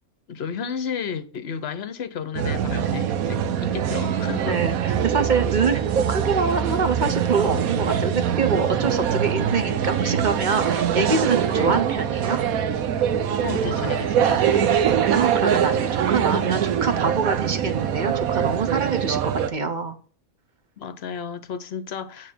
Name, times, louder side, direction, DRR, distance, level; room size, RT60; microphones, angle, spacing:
voice 1, 0.3-4.7 11.5-11.8 13.4-14.8 17.5-17.6 20.8-22.3, left 7 dB, 55° left, 0.9 m, -32 dB
sound 1, 2.4-19.5, right 8 dB, 80° right, 1.2 m, -23 dB
voice 2, 4.5-12.4 15.0-19.9, right 5 dB, 40° right, 0.9 m, -25 dB
9.1 x 3.5 x 6.7 m
omnidirectional pair, 1.5 m